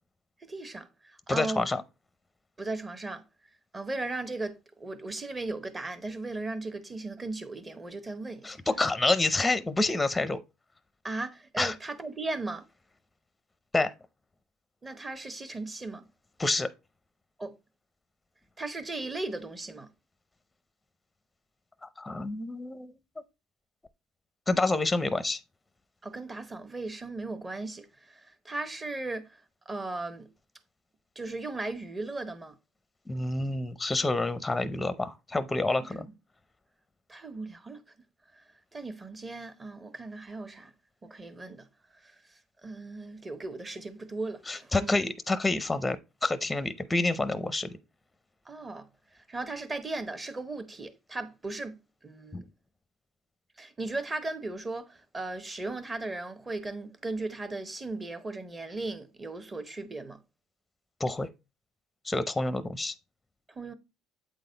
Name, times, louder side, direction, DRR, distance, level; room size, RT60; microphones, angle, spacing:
voice 1, 0.4-1.6 2.6-3.2 3.7-8.6 11.0-12.6 14.8-16.0 17.4-17.5 18.6-19.9 26.0-29.4 29.7-30.3 31.2-32.5 35.9-36.1 37.1-37.8 38.7-40.7 41.0-41.7 42.0-42.1 42.6-45.1 48.5-48.9 49.3-51.8 52.0-52.4 53.6-60.2 63.5-63.7, right 2 dB, 20° right, 1.0 m, -37 dB
voice 2, 1.3-1.8 8.4-10.4 11.6-11.8 13.7-13.9 16.4-16.7 22.0-22.9 24.5-25.4 33.1-36.1 44.5-47.8 52.3-52.4 61.0-61.3 62.0-62.9, left 2 dB, 10° left, 0.6 m, -28 dB
8.1 x 4.0 x 3.9 m
cardioid pair, 115°, 0 cm